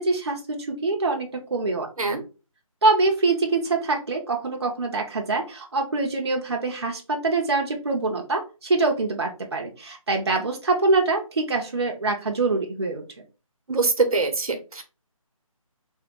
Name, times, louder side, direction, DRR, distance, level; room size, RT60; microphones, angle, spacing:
voice 1, 0.0-1.9 2.8-13.0, right 3 dB, 50° right, 1 dB, 0.6 m, -24 dB
voice 2, 13.7-14.8, right 3 dB, 80° right, 6 dB, 0.9 m, -23 dB
3.5 x 2.2 x 3.6 m, 0.31 s
figure-of-eight pair, 180°, 18 cm